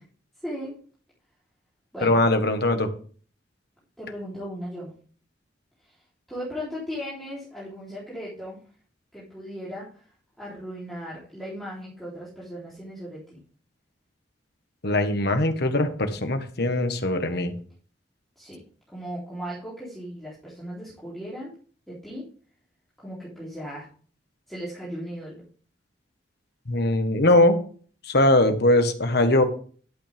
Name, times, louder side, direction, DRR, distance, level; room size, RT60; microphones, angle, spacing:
voice 1, 0.4-0.8 1.9-2.2 4.0-4.9 5.8-5.9 6.3-8.6 9.1-10.0 10.4-13.4 18.4-18.6 18.9-21.5 21.9-22.3 23.0-23.9 24.5-25.5, equal, ahead, -9 dB, 3.7 m, -37 dB
voice 2, 2.0-2.9 14.8-17.5 26.7-27.6 28.1-29.4, left 1 dB, 60° left, 7 dB, 1.5 m, -21 dB
11.5 x 8.6 x 3.6 m, 0.43 s
head